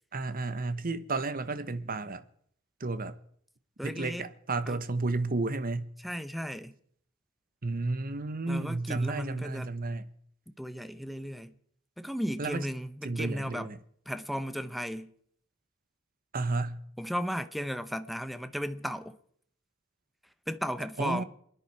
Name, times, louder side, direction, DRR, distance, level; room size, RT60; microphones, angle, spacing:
voice 1, 0.1-2.2 2.8-3.2 3.8-5.9 7.6-10.0 12.4-12.7 13.0-13.8 16.3-16.8 21.0-21.2, right 3 dB, 45° right, 1.0 m, -32 dB
voice 2, 3.8-4.3 4.7-4.8 6.0-6.7 8.5-9.7 10.5-11.5 12.0-13.7 14.1-15.1 17.0-19.2 20.5-21.2, equal, ahead, 0.7 m, -35 dB
27.5 x 10.0 x 4.7 m
head